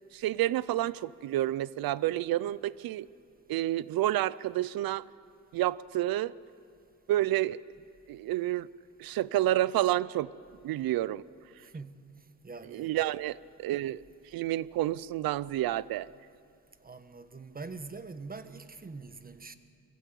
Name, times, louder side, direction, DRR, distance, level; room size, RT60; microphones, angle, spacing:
voice 1, 0.1-3.1 3.5-5.0 5.5-6.3 7.1-7.6 8.1-8.7 9.0-10.3 10.6-11.2 12.7-14.0 14.3-16.1, right 14 dB, 80° right, 20 dB, 0.5 m, -29 dB
voice 2, 12.4-12.9 16.8-19.5, right 4 dB, 25° right, 11 dB, 1.2 m, -43 dB
23.5 x 15.0 x 8.3 m, 2.4 s
cardioid pair, 85°, 35 cm